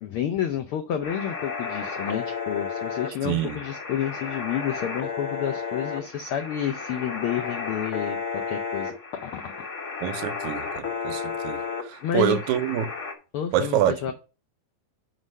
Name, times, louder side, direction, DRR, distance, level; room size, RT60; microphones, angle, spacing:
voice 1, 0.0-9.5 12.0-12.4 13.3-14.1, left 10 dB, 80° left, 1.2 m, -30 dB
sound 1, 1.0-13.1, left 5 dB, 50° left, 0.8 m, -33 dB
voice 2, 3.2-3.6 10.0-12.9 13.5-14.0, right 11 dB, 85° right, 2.1 m, -26 dB
6.0 x 5.4 x 6.2 m
omnidirectional pair, 3.3 m